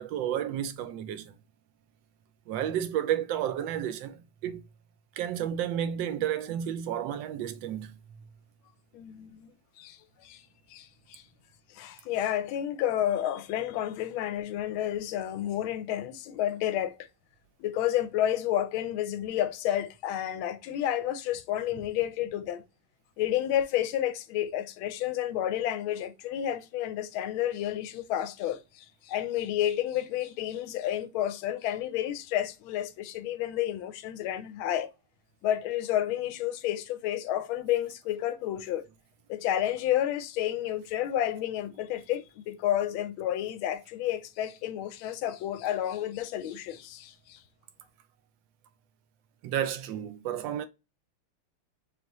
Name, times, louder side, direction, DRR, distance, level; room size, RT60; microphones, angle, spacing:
voice 1, 0.0-1.3 2.5-4.6 5.2-8.0 49.4-50.7, right 10 dB, 70° right, 1.2 m, -31 dB
voice 2, 8.9-10.4 10.7-11.2 11.7-16.9 17.6-22.6 23.2-34.9 35.4-38.9 39.3-47.4, left 12 dB, 75° left, 1.3 m, -30 dB
4.0 x 3.3 x 2.9 m
omnidirectional pair, 2.4 m